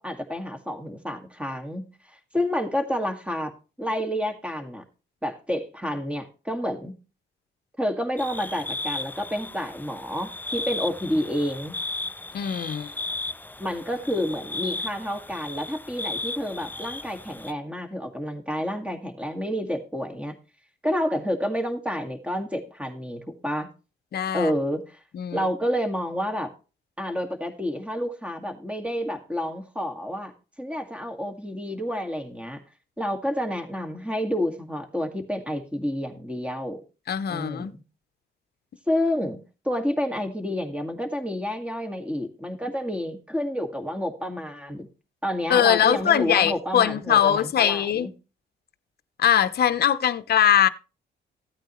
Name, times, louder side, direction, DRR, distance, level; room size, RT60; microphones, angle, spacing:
voice 1, 0.0-3.5 3.8-4.8 5.2-7.0 7.8-11.7 13.6-20.3 20.8-23.7 24.3-25.0 25.3-26.5 27.0-30.3 30.6-32.6 33.0-36.8 37.3-37.8 38.9-39.4 39.6-44.9 45.2-48.1, equal, 5° right, 1.9 m, -29 dB
sound 1, 8.2-17.5, left 2 dB, 10° left, 0.4 m, -35 dB
voice 2, 12.3-12.9 24.1-24.5 25.1-25.5 37.1-37.7 45.5-48.1 49.2-50.7, left 9 dB, 55° left, 0.8 m, -21 dB
15.0 x 8.8 x 3.1 m
cardioid pair, 90°, 20 cm